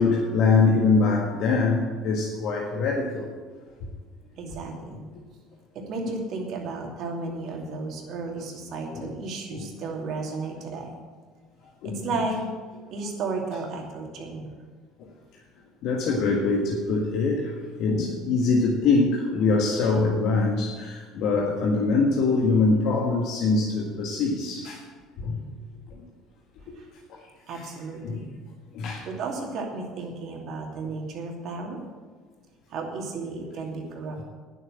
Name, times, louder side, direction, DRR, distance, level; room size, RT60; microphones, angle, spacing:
voice 1, 0.0-3.2 8.9-9.1 9.5-9.7 11.8-12.0 15.8-17.5 17.8-24.8 25.2-25.4 27.5-27.6 28.0-28.2 28.7-29.1, left 3 dB, 65° left, -1 dB, 1.7 m, -23 dB
voice 2, 4.4-5.1 5.7-10.9 11.8-12.4 12.9-14.5 26.8-26.9 27.5-28.3 29.1-31.8 32.7-34.2, right 3 dB, 55° right, 1 dB, 2.6 m, -33 dB
9.9 x 7.9 x 8.6 m, 1.5 s
hypercardioid pair, 75°, 0 cm